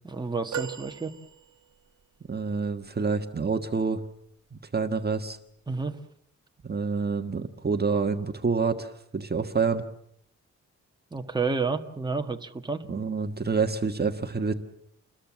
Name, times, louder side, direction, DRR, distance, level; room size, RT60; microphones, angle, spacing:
voice 1, 0.0-1.1 5.7-6.0 11.1-12.8, right 4 dB, 15° right, 4 dB, 1.7 m, -30 dB
sound 1, 0.5-1.9 2.7-2.8, right 8 dB, 80° right, 1.2 m, -37 dB
voice 2, 2.3-4.0 4.5-5.4 6.6-9.8 12.9-14.5, right 5 dB, 35° right, 6 dB, 1.5 m, -27 dB
28.5 x 21.5 x 7.4 m, 0.70 s
wide cardioid pair, 105°, 29 cm